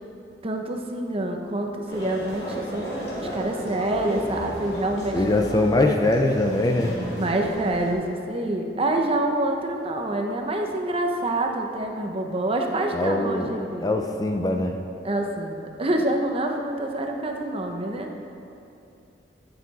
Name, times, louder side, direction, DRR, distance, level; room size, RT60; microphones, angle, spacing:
voice 1, 0.4-5.5 7.2-13.9 15.0-18.1, right 1 dB, 35° right, 3 dB, 0.8 m, -27 dB
sound 1, 1.9-7.9, right 1 dB, 65° left, 2.4 m, -34 dB
voice 2, 5.1-7.0 12.9-13.5 13.8-14.8, left 2 dB, 20° left, 4 dB, 0.5 m, -22 dB
14.5 x 6.9 x 4.1 m, 2.7 s
head